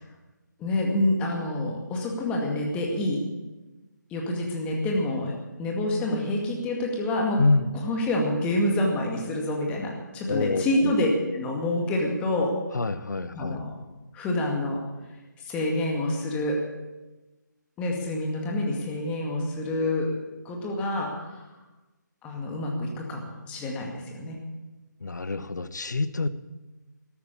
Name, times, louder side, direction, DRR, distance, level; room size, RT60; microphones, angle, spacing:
voice 1, 0.6-3.2 4.1-5.3 5.6-7.4 7.8-12.9 13.3-13.7 14.1-14.8 15.5-16.6 17.8-20.1 20.4-21.4 22.2-24.4, left 1 dB, 10° left, 0 dB, 2.1 m, -27 dB
voice 2, 7.4-7.7 10.3-10.9 12.7-13.6 25.0-26.3, left 3 dB, 65° left, 14 dB, 0.9 m, -26 dB
13.0 x 13.0 x 7.1 m, 1.1 s
figure-of-eight pair, 150°, 10 cm